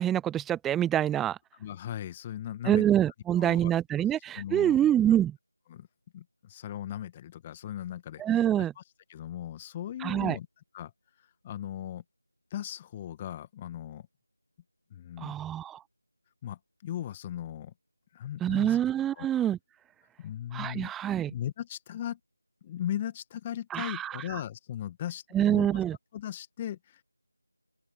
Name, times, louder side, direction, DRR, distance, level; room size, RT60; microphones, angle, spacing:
voice 1, 0.0-1.4 2.7-5.4 8.2-8.7 10.0-10.4 15.2-15.8 18.4-19.6 20.5-21.3 23.7-24.1 25.3-26.0, right 11 dB, 5° right, 0.3 m, -26 dB
voice 2, 1.6-2.9 3.4-3.7 4.3-5.2 5.7-5.9 6.1-8.8 9.1-10.5 10.7-10.9 11.4-12.0 12.5-14.1 14.9-15.4 16.4-17.7 18.1-18.8 19.1-19.3 20.2-20.9 21.3-22.2 22.6-25.8 26.1-27.0, left 11 dB, 15° left, 1.7 m, -38 dB
open air
figure-of-eight pair, 165°, 0 cm